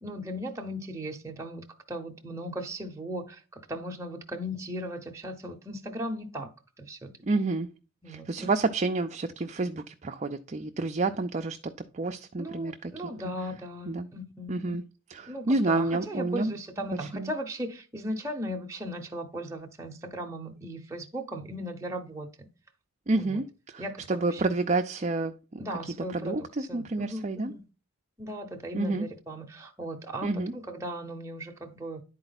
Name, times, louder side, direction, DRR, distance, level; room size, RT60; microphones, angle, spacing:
voice 1, 0.0-6.5 6.8-7.1 8.0-8.5 12.4-14.8 15.3-22.5 23.2-23.4 23.8-24.4 25.6-27.6 28.2-32.0, equal, 15° right, 0.8 m, -37 dB
voice 2, 7.2-7.7 8.1-11.6 11.9-12.9 13.9-14.1 14.5-14.8 15.1-16.5 16.9-17.3 23.1-27.5 28.7-29.1 30.2-30.5, right 3 dB, 30° right, 0.4 m, -29 dB
11.0 x 4.3 x 4.0 m
head